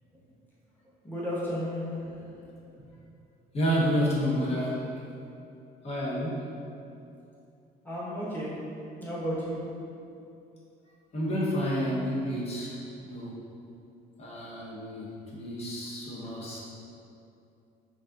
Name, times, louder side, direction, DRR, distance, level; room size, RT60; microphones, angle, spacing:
voice 1, 1.0-2.4 7.8-8.5 9.0-9.6, equal, 10° left, -9 dB, 1.2 m, -33 dB
voice 2, 3.5-4.8 5.8-6.4 11.1-12.8 13.0-13.4 14.2-16.6, equal, 40° left, -6 dB, 1.1 m, -29 dB
5.3 x 2.7 x 2.5 m, 2.7 s
cardioid pair, 110°, 17 cm